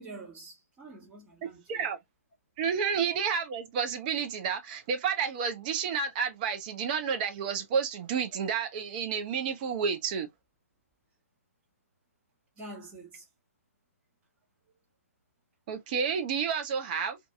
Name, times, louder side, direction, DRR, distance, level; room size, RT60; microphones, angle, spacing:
voice 1, 0.0-1.8 2.8-2.9 12.6-13.2, right 2 dB, 15° right, 1.4 m, -46 dB
voice 2, 2.6-10.3 15.7-17.2, right 6 dB, 35° right, 0.6 m, -30 dB
2.6 x 2.6 x 2.2 m
hypercardioid pair, 140°, 8 cm